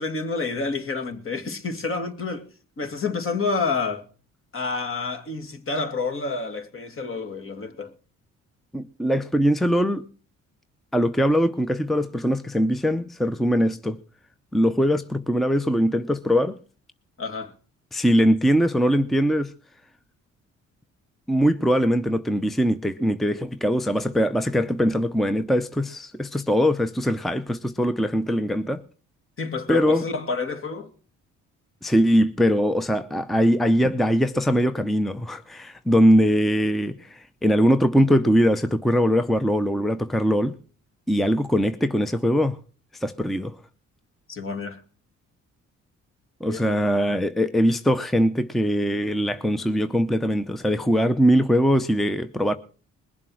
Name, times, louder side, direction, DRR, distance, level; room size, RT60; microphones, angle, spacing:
voice 1, 0.0-2.5 2.8-4.0 4.5-7.9 17.2-17.5 29.4-30.9 44.3-44.8 46.5-46.9, left 4 dB, 45° left, 2.4 m, -29 dB
voice 2, 8.7-10.0 10.9-14.0 14.5-16.6 17.9-19.5 21.3-28.8 29.7-30.0 31.8-40.5 41.1-42.6 43.0-43.6 46.4-52.6, equal, ahead, 0.7 m, -21 dB
21.0 x 7.4 x 6.3 m
cardioid pair, 90°, 30 cm